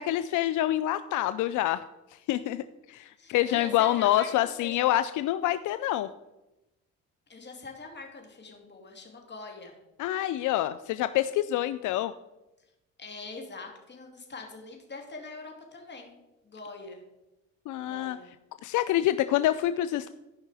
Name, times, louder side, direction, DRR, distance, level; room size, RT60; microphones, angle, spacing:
voice 1, 0.0-1.8 2.3-6.1 10.0-12.1 17.7-18.2 18.6-20.1, left 13 dB, 80° left, 13 dB, 0.5 m, -27 dB
voice 2, 3.2-4.3 4.6-4.9 7.3-9.7 13.0-16.2 16.4-17.0 17.9-18.3, left 3 dB, 35° left, 2 dB, 2.6 m, -43 dB
13.5 x 5.5 x 4.8 m, 0.99 s
cardioid pair, 90°, 30 cm